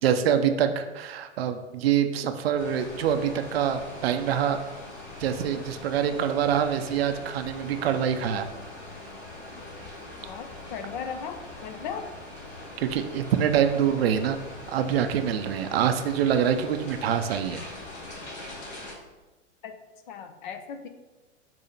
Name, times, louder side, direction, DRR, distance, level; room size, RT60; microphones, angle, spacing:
voice 1, 0.0-4.6 5.2-8.5 12.8-14.4 14.7-17.6, right 8 dB, 50° right, 8 dB, 0.6 m, -25 dB
sound 1, 2.6-18.9, left 2 dB, 60° left, 2.1 m, -42 dB
voice 2, 10.2-12.1 19.6-19.8 20.1-20.9, left 7 dB, 40° left, 8 dB, 0.6 m, -37 dB
6.7 x 2.8 x 5.8 m, 1.1 s
figure-of-eight pair, 105°, 38 cm